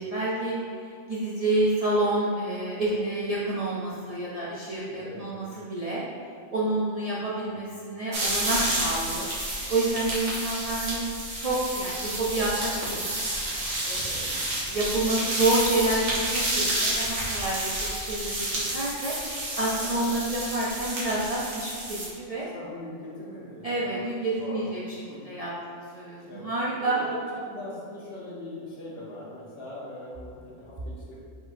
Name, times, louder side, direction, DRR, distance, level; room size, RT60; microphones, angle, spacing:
voice 1, 0.0-6.0 6.5-9.3 9.7-11.0 11.4-13.3 13.8-19.1 19.6-22.5 23.6-24.8 25.1-27.0, right 2 dB, 50° right, -7 dB, 0.4 m, -29 dB
voice 2, 4.8-5.2 7.3-7.6 9.8-10.1 16.5-17.0 19.8-20.0 22.5-24.0 24.3-24.6 25.1-25.2 26.2-26.5 26.8-31.2, left 1 dB, 55° left, -6 dB, 1.2 m, -41 dB
sound 1, 8.1-22.1, right 1 dB, 70° right, 1.4 m, -30 dB
4.9 x 4.1 x 2.6 m, 2.3 s
omnidirectional pair, 1.3 m